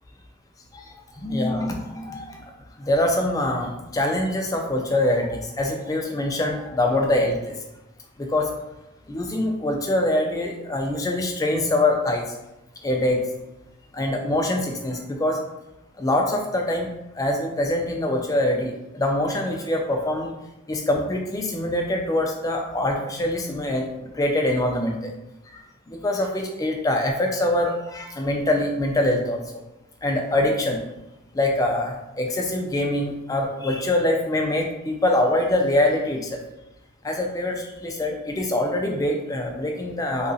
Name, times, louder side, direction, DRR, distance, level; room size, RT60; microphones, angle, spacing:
voice 1, 0.7-2.4 2.8-7.6 8.2-8.5 9.1-12.3 12.8-13.2 13.9-15.4 16.0-16.9 17.1-20.3 20.7-25.1 25.5-29.4 30.0-30.8 31.3-36.4 37.0-40.3, left 1 dB, 15° left, 2 dB, 0.3 m, -24 dB
2.8 x 2.4 x 2.6 m, 0.94 s
head